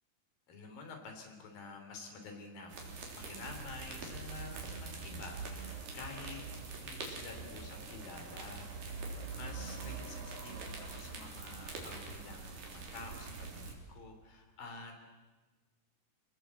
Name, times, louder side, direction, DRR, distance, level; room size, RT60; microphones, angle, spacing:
voice 1, 0.5-6.4 6.8-8.7 9.0-15.0, left 4 dB, 60° left, 4 dB, 4.9 m, -49 dB
sound 1, 2.7-13.7, right 4 dB, 60° right, 5.0 m, -44 dB
26.0 x 19.0 x 8.1 m, 1.3 s
omnidirectional pair, 4.5 m